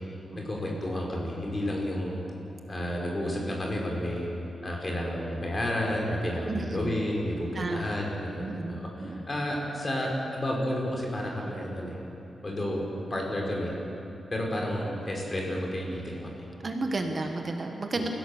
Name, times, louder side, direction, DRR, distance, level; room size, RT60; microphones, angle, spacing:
voice 1, 0.3-2.2 2.7-4.3 4.6-12.0 12.4-13.7 14.3-16.3 17.2-17.3 17.9-18.1, left 1 dB, 25° left, -1 dB, 4.8 m, -31 dB
voice 2, 6.5-6.9 7.5-8.0 8.4-9.2 16.6-18.1, right 2 dB, 35° right, 4 dB, 1.4 m, -32 dB
28.5 x 16.5 x 7.1 m, 2.8 s
wide cardioid pair, 140°, 0 cm